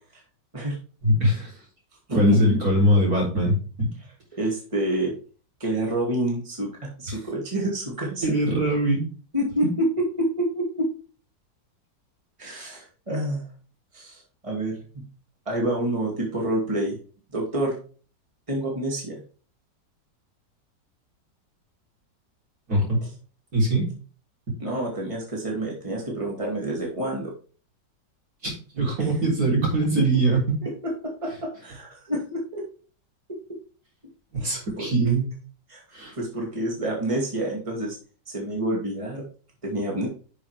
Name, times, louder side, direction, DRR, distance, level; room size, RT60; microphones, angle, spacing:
voice 1, 1.0-1.5 2.1-3.9 8.2-9.1 22.7-23.0 23.5-23.9 24.5-24.6 28.4-30.6 34.3-35.3 35.9-36.1, right 1 dB, 55° right, -3 dB, 4.2 m, -22 dB
voice 2, 2.1-2.6 4.4-5.1 5.6-8.2 9.3-9.9 10.2-10.9 12.4-13.5 13.9-14.8 15.5-17.0 17.3-17.8 18.5-19.2 24.6-27.3 30.6-32.6 34.4-34.9 35.7-35.8 36.1-38.0 38.3-39.2 39.6-40.1, right 1 dB, 15° right, -2 dB, 2.6 m, -28 dB
10.5 x 6.3 x 3.4 m, 0.38 s
omnidirectional pair, 1.9 m